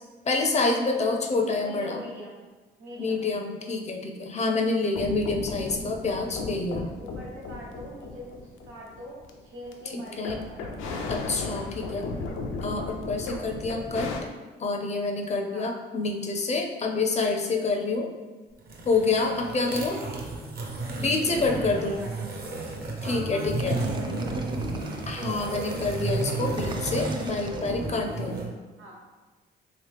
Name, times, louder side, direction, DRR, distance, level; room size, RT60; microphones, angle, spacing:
voice 1, 0.2-2.0 3.0-6.9 9.9-10.4 11.1-12.1 12.6-14.2 14.6-18.1 18.8-20.0 21.0-22.0 23.0-23.8 25.1-28.4, left 3 dB, 35° left, 3 dB, 0.5 m, -27 dB
voice 2, 1.6-2.4 2.8-3.2 7.0-10.8 15.5-15.7 19.3-19.4 21.3-22.3 23.0-24.5 28.8-29.0, equal, 85° right, -4 dB, 1.0 m, -43 dB
sound 1, 4.9-9.7 10.1-14.2, left 3 dB, 90° left, 0.5 m, -35 dB
sound 2, 18.6-28.5, right 2 dB, 55° right, 0.8 m, -32 dB
sound 3, 23.6-28.4, right 2 dB, 25° right, 0.4 m, -40 dB
3.0 x 2.9 x 3.3 m, 1.3 s
cardioid pair, 90°, 20 cm